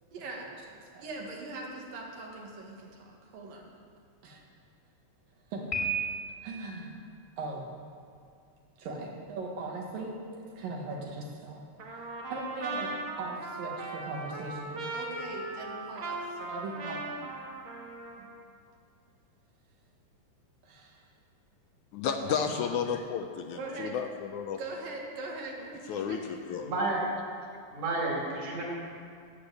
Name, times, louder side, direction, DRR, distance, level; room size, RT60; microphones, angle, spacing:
voice 1, 0.1-3.7 4.2-4.4 5.5-5.8 6.4-7.0 7.4-7.6 8.8-11.7 11.9-17.0 18.2-18.3 20.6-21.0 22.2-22.6 23.6-24.0 24.6-26.2, right 2 dB, 80° right, -1 dB, 3.5 m, -40 dB
Piano, 5.7-6.7, right 3 dB, 20° left, 1.6 m, -32 dB
Trumpet, 11.8-18.4, right 3 dB, 50° right, 2.0 m, -38 dB
voice 2, 21.9-24.6 25.9-26.7, left 7 dB, 75° left, 5 dB, 1.9 m, -32 dB
voice 3, 26.6-27.0 27.7-28.6, right 2 dB, 65° right, -3 dB, 5.0 m, -31 dB
17.0 x 7.3 x 8.0 m, 2.3 s
omnidirectional pair, 3.9 m